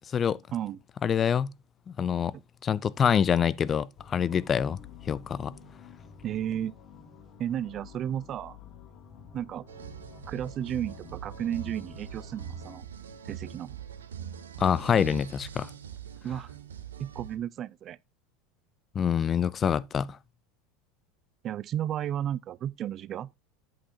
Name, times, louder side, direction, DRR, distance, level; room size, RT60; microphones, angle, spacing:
voice 1, 1.0-1.5 1.9-2.3 2.6-4.8 5.1-5.5 14.6-15.7 19.0-20.2, left 8 dB, 30° left, 0.4 m, -26 dB
sound 1, 4.0-12.8, left 6 dB, 45° left, 2.3 m, -50 dB
voice 2, 6.2-6.7 7.4-8.6 9.3-9.7 10.3-12.9 13.3-13.8 16.2-16.5 17.0-18.0 21.4-23.3, right 10 dB, 40° right, 0.4 m, -33 dB
sound 2, 9.7-17.4, right 8 dB, 85° right, 0.9 m, -42 dB
8.6 x 7.7 x 2.7 m
hypercardioid pair, 90°, 0 cm